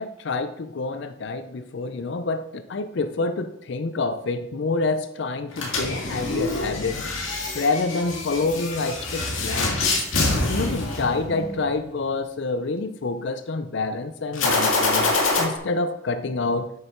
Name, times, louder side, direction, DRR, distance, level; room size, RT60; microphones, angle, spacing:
voice 1, 0.0-7.0 7.5-9.8 10.5-16.7, left 3 dB, 60° left, 10 dB, 0.5 m, -27 dB
sound 1, 5.5-11.7 14.3-15.4, left 3 dB, 85° left, 2.1 m, -25 dB
8.7 x 6.7 x 4.4 m, 0.78 s
head